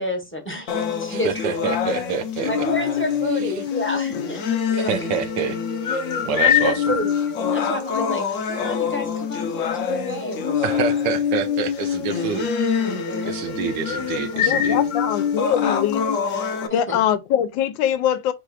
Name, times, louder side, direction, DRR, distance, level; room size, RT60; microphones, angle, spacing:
voice 1, 0.0-1.8 2.4-4.9 6.1-7.1 7.5-10.9 11.4-11.6 13.1-13.5 14.3-14.6 16.7-17.0, left 1 dB, 10° left, 0.6 m, -30 dB
sound 1, 0.7-16.7, left 7 dB, 60° left, 0.8 m, -24 dB
voice 2, 1.1-2.7 3.4-3.5 4.7-6.0 6.2-6.7 10.6-12.5 12.8-12.9 13.2-14.8, right 6 dB, 75° right, 1.3 m, -27 dB
voice 3, 14.4-16.1 16.7-18.3, left 10 dB, 80° left, 1.3 m, -22 dB
4.5 x 2.4 x 4.7 m
omnidirectional pair, 2.1 m